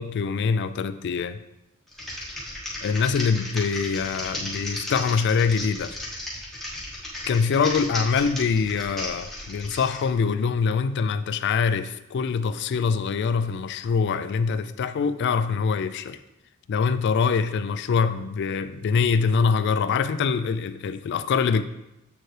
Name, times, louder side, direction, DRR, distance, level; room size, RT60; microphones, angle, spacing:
voice 1, 0.0-1.4 2.8-6.0 7.3-16.2 16.7-21.6, left 5 dB, 50° left, 12 dB, 0.3 m, -24 dB
Typing, 1.9-10.0, left 1 dB, ahead, 1.2 m, -35 dB
7.7 x 4.4 x 3.3 m, 0.91 s
head